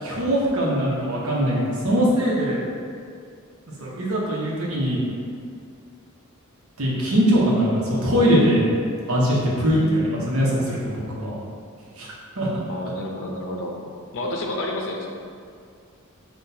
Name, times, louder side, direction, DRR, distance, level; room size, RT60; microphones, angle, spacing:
voice 1, 0.0-2.6 3.8-5.0 6.8-8.7 9.1-11.4 12.0-12.5, equal, 80° right, -5 dB, 1.0 m, -21 dB
voice 2, 9.7-10.0 12.7-13.8 14.1-15.1, left 1 dB, 65° left, 0 dB, 0.6 m, -30 dB
5.9 x 2.4 x 2.7 m, 2.3 s
head